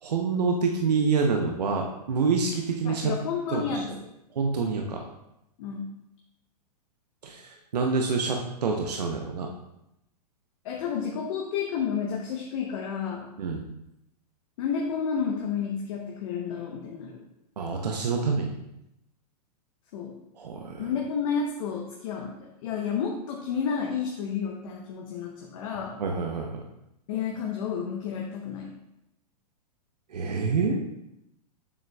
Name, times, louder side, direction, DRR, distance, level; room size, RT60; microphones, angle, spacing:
voice 1, 0.0-3.1 3.5-3.8 4.3-5.0 7.2-9.5 13.4-13.6 17.6-18.6 20.4-20.9 26.0-26.6 30.1-30.8, right 4 dB, 80° right, 1 dB, 0.8 m, -27 dB
voice 2, 2.8-4.0 5.6-5.9 10.6-13.3 14.6-17.2 19.9-20.2 20.8-26.0 27.1-28.8, left 6 dB, 55° left, 0 dB, 0.9 m, -31 dB
7.3 x 6.4 x 2.3 m, 0.85 s
hypercardioid pair, 110°, 20 cm